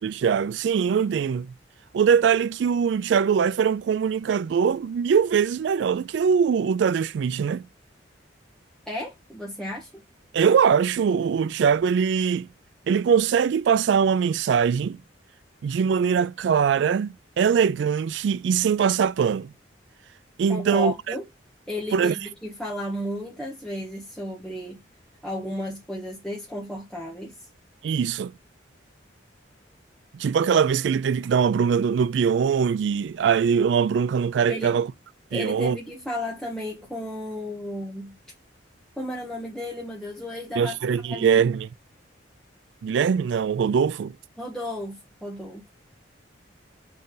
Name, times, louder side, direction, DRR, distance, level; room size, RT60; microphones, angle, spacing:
voice 1, 0.0-1.5 1.9-7.7 10.3-12.5 12.9-15.0 15.6-19.5 20.4-21.1 21.9-22.2 27.8-28.3 30.1-34.9 35.3-35.8 40.6-41.7 42.8-44.1, right 7 dB, 70° right, 0.3 m, -22 dB
voice 2, 8.9-9.9 20.5-21.3 21.7-24.8 25.2-27.3 34.5-34.8 35.3-38.2 39.0-40.8 41.1-41.5 44.4-45.6, left 1 dB, 5° left, 1.5 m, -33 dB
7.3 x 3.8 x 3.9 m
head